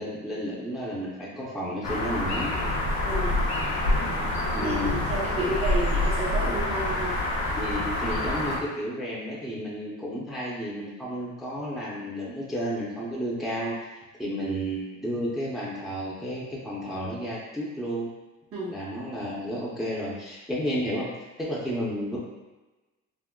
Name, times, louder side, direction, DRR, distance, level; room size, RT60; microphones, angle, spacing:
voice 1, 0.0-2.5 4.5-5.0 7.6-13.7 14.2-18.1 18.7-21.1 21.4-22.2, equal, ahead, -6 dB, 0.6 m, -32 dB
sound 1, 1.8-8.6, left 1 dB, 65° left, 0.7 m, -27 dB
voice 2, 3.1-3.4 4.6-7.1 18.5-18.7, right 1 dB, 50° right, -7 dB, 0.9 m, -31 dB
3.6 x 2.0 x 2.2 m, 1.1 s
cardioid pair, 90°, 30 cm